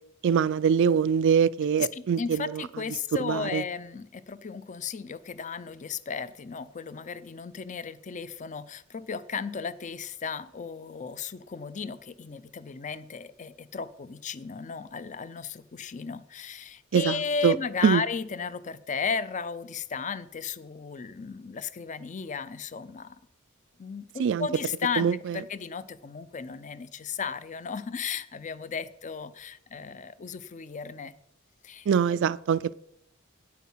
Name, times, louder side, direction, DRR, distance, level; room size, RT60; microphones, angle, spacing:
voice 1, 0.2-2.6 3.2-3.6 16.9-17.6 17.8-18.0 24.2-24.5 25.0-25.4 31.9-32.7, right 7 dB, 60° right, 0.3 m, -24 dB
voice 2, 1.9-23.2 23.8-25.1 25.3-31.1 31.6-32.2, left 5 dB, 35° left, 0.5 m, -35 dB
9.3 x 8.6 x 5.6 m
head